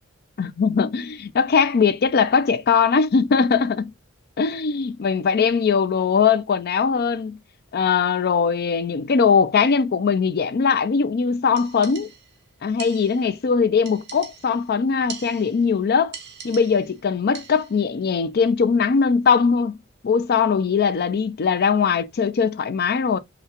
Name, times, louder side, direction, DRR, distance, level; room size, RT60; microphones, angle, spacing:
voice 1, 0.4-3.9 4.4-7.4 7.7-12.1 12.6-16.1 16.4-19.8 20.0-23.2, left 5 dB, 45° left, 0.4 m, -20 dB
sound 1, 11.6-12.4 12.8-13.4 13.8-14.7 15.1-15.7 16.1-17.0 17.3-17.8, right 7 dB, 50° right, 0.9 m, -41 dB
5.7 x 2.3 x 2.8 m
head